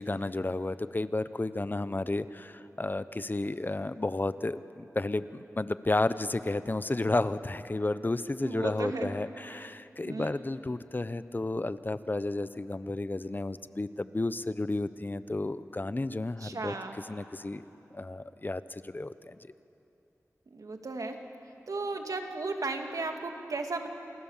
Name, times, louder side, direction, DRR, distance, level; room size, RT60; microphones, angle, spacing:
voice 1, 0.0-16.7 17.1-17.6 17.9-19.4, left 2 dB, 35° left, 14 dB, 0.8 m, -32 dB
voice 2, 8.4-9.6 10.1-10.3 16.4-17.0 20.5-21.2 21.7-23.9, right 3 dB, 85° right, 4 dB, 2.3 m, -35 dB
28.5 x 28.5 x 7.4 m, 2.9 s
wide cardioid pair, 70°, 6 cm